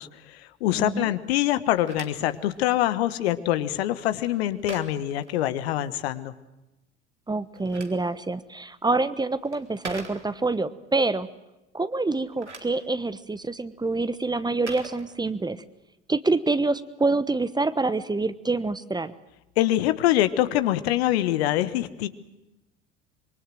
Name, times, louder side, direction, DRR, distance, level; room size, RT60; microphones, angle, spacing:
voice 1, 0.0-6.3 19.6-22.1, left 13 dB, 65° left, 12 dB, 1.5 m, -24 dB
voice 2, 0.7-1.1 7.3-11.3 11.7-15.6 16.1-19.1, right 3 dB, 10° right, 14 dB, 1.2 m, -26 dB
Telephone, 1.5-6.0 7.3-10.7 12.1-15.7, right 3 dB, 85° right, 3.0 m, -45 dB
26.0 x 23.5 x 7.8 m, 0.97 s
figure-of-eight pair, 65°, 34 cm